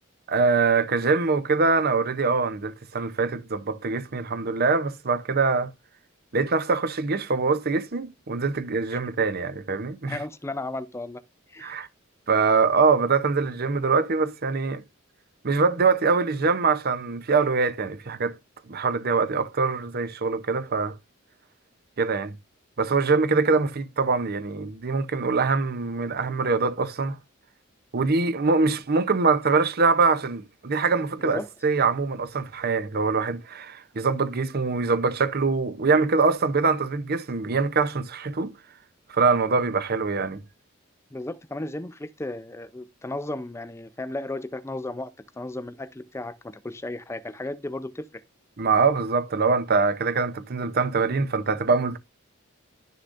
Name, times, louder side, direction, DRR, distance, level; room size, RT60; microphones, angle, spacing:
voice 1, 0.3-5.7 6.3-10.2 11.6-11.9 12.3-14.8 15.4-18.4 18.7-20.9 22.0-22.3 22.8-27.2 27.9-38.5 39.1-40.4 48.6-52.0, right 4 dB, 50° right, 0.7 m, -23 dB
voice 2, 10.1-11.2 11.5-11.9 31.3-31.5 41.1-45.1 45.4-48.2, left 2 dB, 15° left, 0.5 m, -34 dB
11.5 x 6.7 x 2.5 m
head